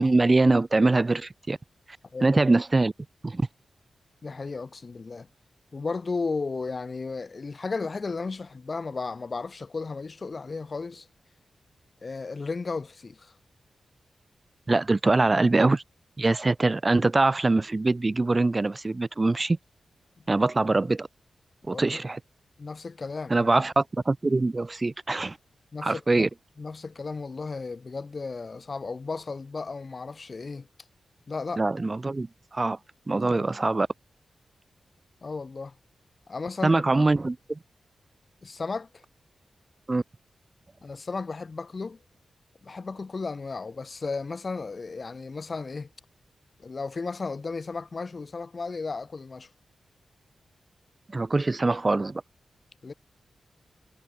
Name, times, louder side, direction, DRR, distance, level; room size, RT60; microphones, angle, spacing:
voice 1, 0.0-1.6 2.2-2.9 3.2-3.5 14.7-15.8 16.2-19.6 20.3-21.1 21.7-22.2 23.3-25.4 25.8-26.3 31.6-32.3 32.5-32.8 33.1-33.9 36.6-37.6 39.9-40.0 51.1-52.2, right 2 dB, 30° right, 1.4 m, -23 dB
voice 2, 4.2-5.3 5.7-11.1 12.0-13.3 21.6-22.0 22.6-23.5 25.7-26.3 26.6-30.7 31.3-31.6 33.2-33.5 35.2-35.8 36.3-36.8 38.4-39.0 40.8-42.0 42.6-45.9 46.6-49.5 52.8-52.9, left 4 dB, 45° left, 5.6 m, -34 dB
cardioid pair, 70°, 0 cm